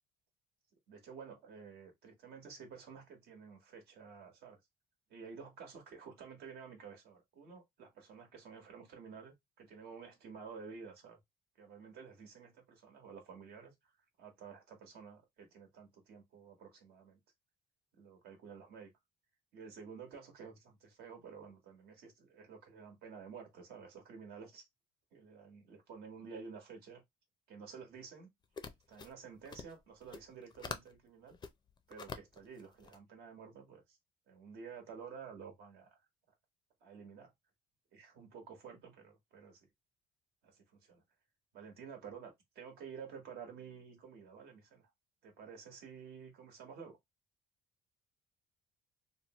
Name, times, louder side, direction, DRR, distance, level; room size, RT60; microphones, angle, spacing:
voice 1, 0.9-4.6 5.1-11.2 11.6-13.9 14.2-17.2 18.0-18.9 19.5-24.6 25.1-27.0 27.5-28.3 28.9-31.4 31.9-34.0 34.3-36.0 36.8-37.3 37.9-39.7 40.4-41.0 41.5-44.9 45.2-47.0, right 6 dB, 70° right, 1.2 m, -51 dB
sound 1, 28.4-31.0 31.3-33.0, left 5 dB, 25° left, 0.4 m, -47 dB
3.0 x 2.0 x 2.9 m
cardioid pair, 110°, 17 cm